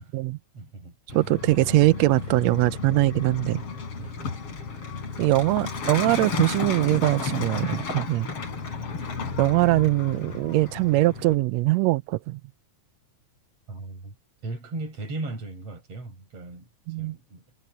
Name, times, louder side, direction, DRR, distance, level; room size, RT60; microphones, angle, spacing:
voice 1, 0.0-0.4 1.1-3.6 5.2-8.3 9.4-12.4 16.9-17.1, right 19 dB, 80° right, 1.6 m, -22 dB
voice 2, 0.5-1.0 3.8-4.4 13.7-14.1 14.4-16.7 17.0-17.4, right 2 dB, 50° right, 6.4 m, -37 dB
Truck, 1.1-11.4, left 4 dB, 50° left, 4.2 m, -33 dB
omnidirectional pair, 3.5 m